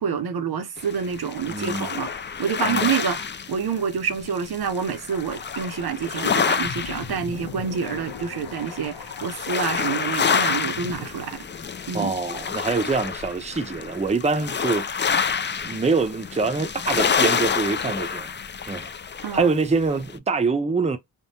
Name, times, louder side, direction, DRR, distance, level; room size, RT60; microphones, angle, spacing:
voice 1, 0.0-11.4 11.9-12.1 19.2-19.5, right 6 dB, 60° right, 0.7 m, -28 dB
sound 1, 0.8-20.2, left 6 dB, 25° left, 0.4 m, -28 dB
voice 2, 1.5-1.9 2.6-2.9 11.9-15.1 15.6-18.3 18.7-18.9 19.3-21.0, right 4 dB, 15° right, 0.6 m, -25 dB
sound 2, 5.1-11.0, left 5 dB, 75° left, 1.0 m, -40 dB
3.4 x 2.1 x 2.7 m
cardioid pair, 85°, 43 cm